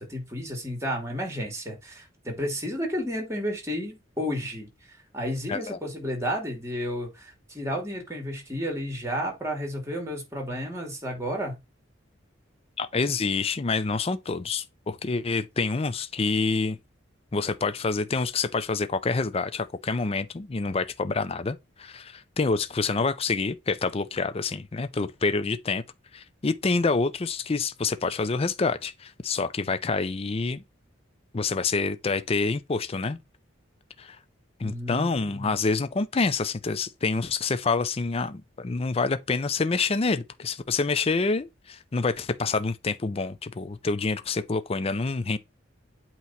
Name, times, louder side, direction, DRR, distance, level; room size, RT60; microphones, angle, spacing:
voice 1, 0.0-11.6 34.6-35.5, equal, 15° right, 2.8 m, -32 dB
voice 2, 12.8-16.8 17.3-25.8 26.1-30.6 31.3-33.2 34.0-34.2 34.6-45.4, left 4 dB, 30° left, 0.5 m, -27 dB
8.3 x 3.0 x 5.8 m
head